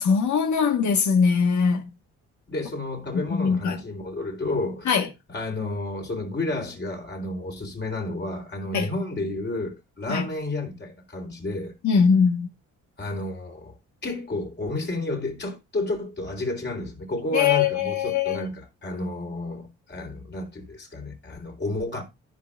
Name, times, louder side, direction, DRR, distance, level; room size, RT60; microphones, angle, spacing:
voice 1, 0.0-1.9 3.1-3.8 4.9-5.1 8.7-8.9 10.1-10.2 11.8-12.5 17.3-18.5, left 6 dB, 70° left, 1.7 m, -21 dB
voice 2, 2.5-5.0 5.3-11.8 13.0-13.7 14.0-22.0, left 2 dB, 35° left, 3.9 m, -31 dB
14.5 x 5.4 x 2.5 m
cardioid pair, 90°, 30 cm